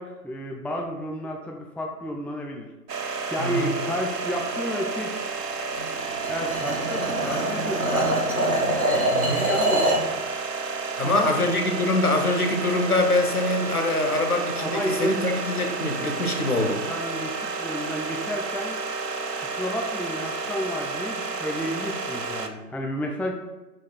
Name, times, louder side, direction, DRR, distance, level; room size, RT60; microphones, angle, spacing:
voice 1, 0.0-2.7 3.3-5.1 6.3-8.1 9.4-10.0 11.0-11.4 14.6-15.3 16.5-18.8 19.6-23.3, equal, 5° left, 1 dB, 0.3 m, -31 dB
sound 1, 2.9-22.5, right 4 dB, 80° right, 0.6 m, -31 dB
voice 2, 3.4-3.7 9.1-9.5 11.0-16.8, left 2 dB, 65° left, 3 dB, 0.8 m, -24 dB
sound 2, 5.7-10.1, right 1 dB, 60° right, 1.0 m, -25 dB
4.6 x 2.1 x 4.4 m, 1.1 s
figure-of-eight pair, 180°, 48 cm